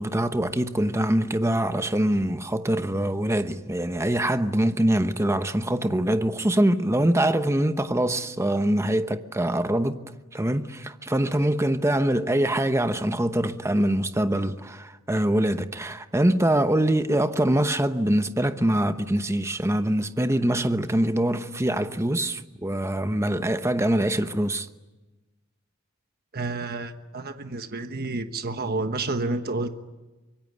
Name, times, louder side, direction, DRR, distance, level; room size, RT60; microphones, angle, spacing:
voice 1, 0.0-10.0 10.3-24.7, right 1 dB, 15° right, 1.0 m, -24 dB
voice 2, 26.3-29.7, right 2 dB, 45° right, 1.3 m, -30 dB
25.0 x 23.0 x 9.7 m
head